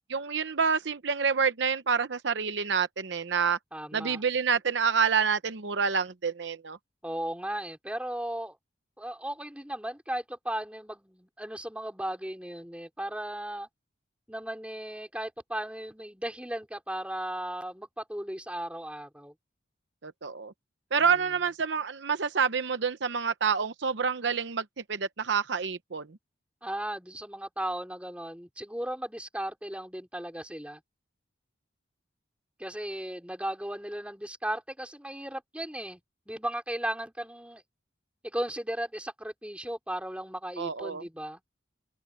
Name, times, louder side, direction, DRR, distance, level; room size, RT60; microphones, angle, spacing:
voice 1, 0.1-3.6 3.9-6.8 20.0-20.5 20.9-26.2 40.6-41.0, right 6 dB, 70° right, 0.8 m, -28 dB
voice 2, 3.7-4.2 7.0-8.6 9.0-13.7 14.3-19.3 21.0-21.2 26.6-30.8 32.6-36.0 36.3-37.6 38.2-41.4, right 1 dB, 5° right, 4.9 m, -36 dB
open air
head